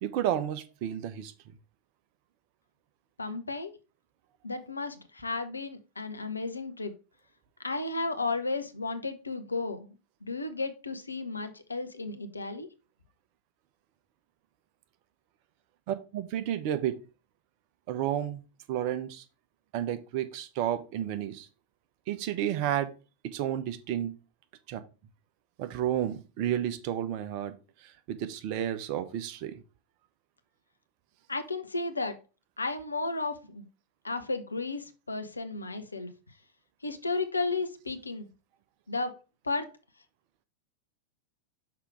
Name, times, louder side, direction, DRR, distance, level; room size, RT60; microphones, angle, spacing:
voice 1, 0.0-1.3 15.9-17.0 17.9-18.4 18.7-19.2 19.7-21.5 22.1-22.9 23.3-24.1 24.7-24.8 25.6-27.5 27.8-29.5, right 11 dB, 45° right, 0.9 m, -31 dB
voice 2, 3.2-3.7 4.4-6.9 7.6-9.9 10.2-12.7 31.3-32.2 32.6-33.6 34.0-36.1 36.8-38.3 38.9-39.1 39.4-39.7, left 3 dB, 80° left, 0.8 m, -33 dB
6.0 x 4.8 x 4.7 m
figure-of-eight pair, 90°, 0 cm